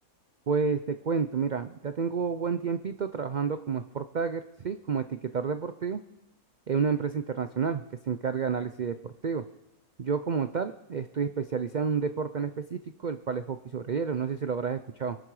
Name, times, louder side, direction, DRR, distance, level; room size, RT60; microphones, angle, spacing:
voice 1, 0.5-6.0 6.7-9.4 10.0-15.2, right 6 dB, 80° right, 10 dB, 0.4 m, -30 dB
25.5 x 11.5 x 4.8 m, 0.98 s
omnidirectional pair, 1.6 m